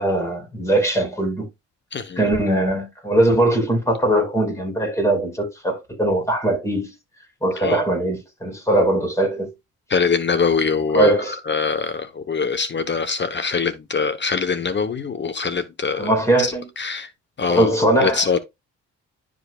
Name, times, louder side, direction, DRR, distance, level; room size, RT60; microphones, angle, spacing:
voice 1, 0.0-1.5 2.2-6.9 7.4-9.5 10.9-11.3 16.0-16.7 17.5-18.4, right 1 dB, 10° left, 4.9 m, -20 dB
voice 2, 1.9-2.3 7.6-7.8 9.9-11.1 11.5-17.1 17.4-17.7 18.0-18.4, left 5 dB, 35° left, 1.0 m, -23 dB
11.0 x 5.2 x 2.3 m
cardioid pair, 90°, 30 cm